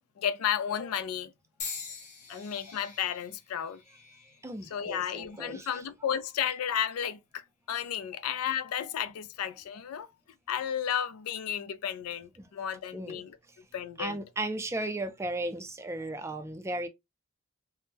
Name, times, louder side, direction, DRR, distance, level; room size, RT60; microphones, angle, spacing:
voice 1, 0.2-1.3 2.3-3.8 4.6-10.1 10.5-13.4 13.7-14.2, left 9 dB, 85° left, 0.4 m, -33 dB
sound 1, 1.6-5.7 6.4-6.9 7.8-8.0, left 5 dB, 35° left, 0.8 m, -45 dB
voice 2, 4.4-5.8 12.4-12.5 12.9-13.2 14.0-16.9, right 2 dB, 15° right, 0.3 m, -35 dB
3.5 x 2.0 x 2.7 m
head